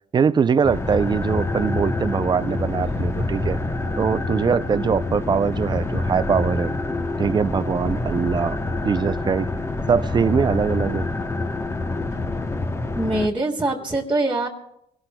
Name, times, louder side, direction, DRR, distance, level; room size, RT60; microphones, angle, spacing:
voice 1, 0.1-3.6 4.0-6.7 7.2-8.6 8.8-9.5 9.9-11.1, right 6 dB, 25° right, 0.4 m, -22 dB
sound 1, 0.6-13.3, left 2 dB, 15° left, 0.8 m, -26 dB
voice 2, 13.0-14.5, right 2 dB, 10° right, 1.6 m, -23 dB
25.0 x 17.5 x 2.2 m
cardioid pair, 110°, 17 cm